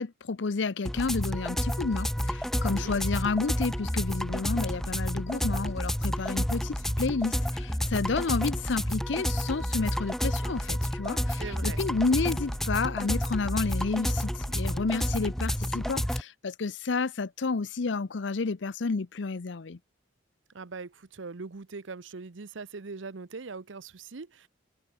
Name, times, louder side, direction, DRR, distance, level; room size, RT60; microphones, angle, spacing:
voice 1, 0.0-19.8, left 4 dB, 75° left, 0.6 m, -30 dB
sound 1, 0.9-16.2, equal, ahead, 0.5 m, -30 dB
voice 2, 2.7-3.0 11.4-11.8 20.5-24.5, right 4 dB, 80° right, 0.8 m, -41 dB
open air
head